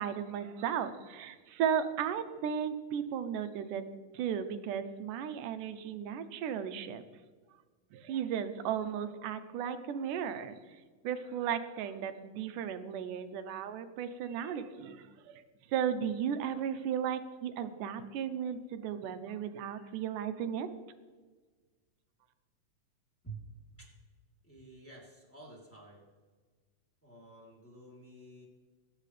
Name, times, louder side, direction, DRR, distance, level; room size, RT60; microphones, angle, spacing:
voice 1, 0.0-3.8 4.1-7.0 7.9-10.6 11.0-15.4 15.7-20.7, right 8 dB, 75° right, 10 dB, 2.2 m, -35 dB
voice 2, 24.4-26.1 27.0-28.5, right 3 dB, 5° left, -3 dB, 2.8 m, -50 dB
21.0 x 9.4 x 3.3 m, 1.4 s
omnidirectional pair, 3.9 m